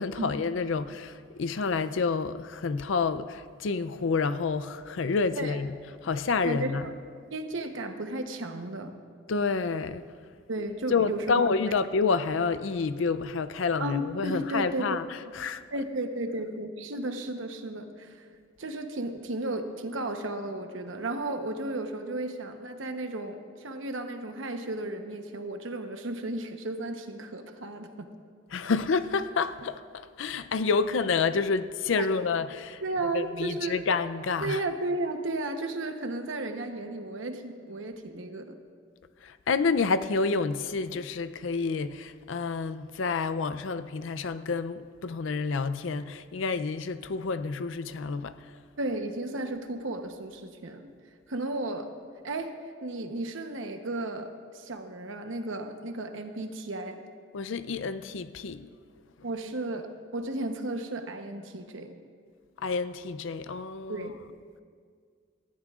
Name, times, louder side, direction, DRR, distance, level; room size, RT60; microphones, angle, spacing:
voice 1, 0.0-5.8 6.0-6.9 9.3-10.1 10.6-15.6 28.5-32.8 33.1-34.6 39.2-48.6 57.3-58.7 62.6-64.1, left 4 dB, 70° left, 0.5 m, -29 dB
voice 2, 6.4-6.9 7.3-8.9 10.5-11.5 13.8-15.0 15.7-18.3 18.6-28.1 32.0-32.1 32.8-33.8 34.4-38.6 48.8-50.9 51.3-51.9 52.2-52.6 52.8-57.0 59.2-62.0 63.9-64.2, right 2 dB, 75° right, 0.9 m, -34 dB
19.0 x 14.5 x 2.4 m
head